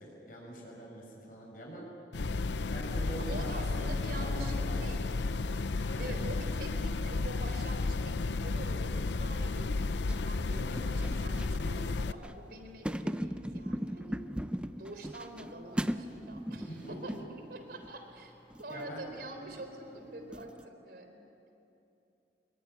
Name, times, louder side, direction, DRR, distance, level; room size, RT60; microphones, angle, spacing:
voice 1, 0.0-1.9 2.6-5.0 5.8-6.2 10.5-11.0 16.7-17.1 18.7-19.0, right 1 dB, 50° left, -2 dB, 6.5 m, -44 dB
sound 1, 2.1-12.1, left 3 dB, 85° left, 0.6 m, -33 dB
voice 2, 3.2-4.5 4.8-5.1 6.0-9.9 10.2-14.3 14.8-18.3 18.6-21.2, right 1 dB, 60° right, 6 dB, 4.0 m, -45 dB
sound 2, 5.4-20.7, equal, 5° right, 0.6 m, -41 dB
26.0 x 23.0 x 9.7 m, 2.8 s
head